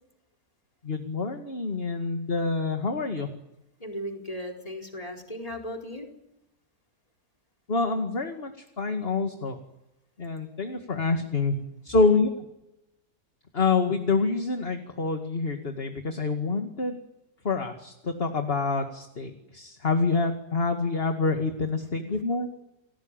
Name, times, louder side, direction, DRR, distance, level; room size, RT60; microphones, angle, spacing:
voice 1, 0.8-3.3 7.7-8.5 8.8-9.6 10.2-11.6 11.8-12.3 13.5-17.0 17.4-22.5, left 4 dB, 35° left, 5 dB, 2.3 m, -27 dB
voice 2, 3.8-6.1, equal, 20° left, 2 dB, 4.3 m, -36 dB
30.0 x 20.0 x 9.0 m, 0.89 s
omnidirectional pair, 1.7 m